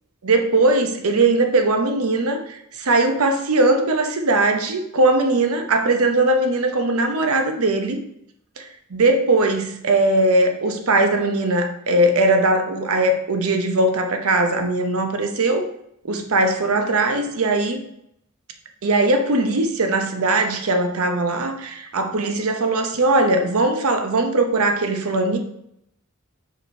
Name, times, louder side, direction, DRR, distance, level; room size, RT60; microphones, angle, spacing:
voice 1, 0.2-8.0 8.6-15.7 16.0-17.8 18.8-25.4, right 2 dB, 75° right, 6 dB, 0.8 m, -20 dB
5.0 x 4.9 x 4.4 m, 0.76 s
head